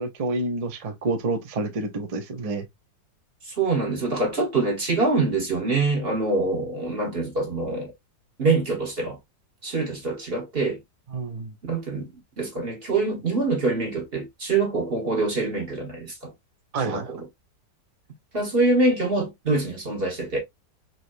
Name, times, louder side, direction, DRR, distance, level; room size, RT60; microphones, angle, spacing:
voice 1, 0.0-2.6 11.1-11.5 16.7-17.1, right 3 dB, 70° right, 0.3 m, -28 dB
voice 2, 3.5-7.9 8.4-9.2 9.6-10.8 11.6-12.1 12.4-16.3 16.8-17.2 18.3-20.4, right 3 dB, 35° right, 1.3 m, -25 dB
4.0 x 3.1 x 2.5 m
omnidirectional pair, 1.9 m